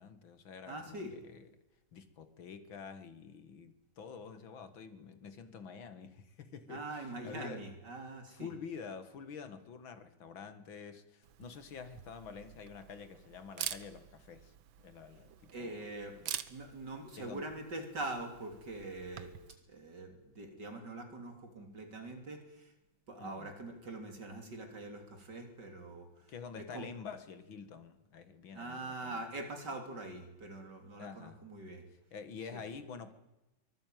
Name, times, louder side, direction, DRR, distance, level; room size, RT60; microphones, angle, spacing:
voice 1, 0.0-1.5 1.9-7.7 8.3-15.9 16.2-16.3 17.2-17.5 23.2-23.5 26.3-29.2 31.0-31.4 32.1-33.1, left 6 dB, 85° left, 2.6 m, -48 dB
voice 2, 0.7-1.1 6.7-8.5 15.5-16.2 16.5-19.4 19.7-22.7 23.1-26.1 26.6-26.9 28.5-31.8 32.5-32.6, right 2 dB, 60° right, 4.0 m, -43 dB
Camera, 11.2-19.6, right 10 dB, 80° right, 1.8 m, -47 dB
24.0 x 19.5 x 9.4 m
omnidirectional pair, 2.1 m